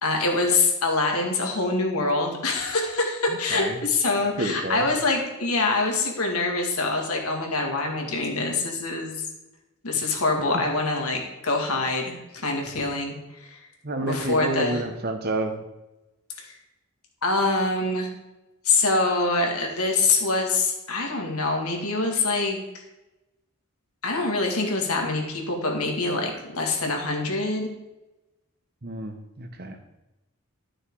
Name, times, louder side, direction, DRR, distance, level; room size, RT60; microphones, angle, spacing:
voice 1, 0.0-9.3 9.8-13.6 14.0-14.8 16.4-16.6 17.2-18.1 18.6-22.6 24.0-27.7, left 3 dB, 80° left, 1 dB, 2.1 m, -25 dB
voice 2, 3.5-3.8 4.4-4.9 10.0-10.1 10.5-10.6 13.8-15.6 28.8-29.8, right 2 dB, 45° right, 6 dB, 1.1 m, -29 dB
12.0 x 6.3 x 4.8 m, 1.0 s
head